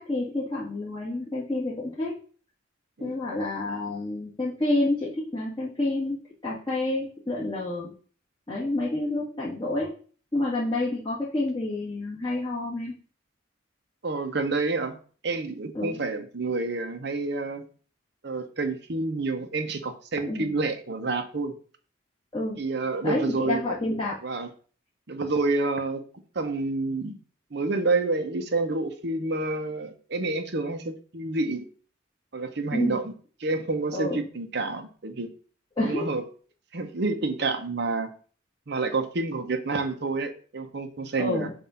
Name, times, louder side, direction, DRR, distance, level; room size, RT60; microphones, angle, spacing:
voice 1, 0.0-2.2 3.0-6.2 6.4-7.9 8.5-9.9 10.3-12.9 15.7-16.0 20.3-20.5 22.3-22.6 23.0-24.2 32.7-33.0 33.9-34.2 35.8-36.1 41.2-41.5, left 2 dB, 25° left, -7 dB, 1.7 m, -28 dB
voice 2, 14.0-15.0 15.2-17.6 18.2-21.6 22.6-23.6 24.2-24.5 25.1-26.0 26.3-27.2 27.5-31.6 32.3-33.1 33.4-35.3 35.8-36.2 36.7-38.1 38.7-41.5, right 3 dB, 55° right, 7 dB, 0.8 m, -28 dB
7.3 x 2.6 x 5.6 m, 0.42 s
head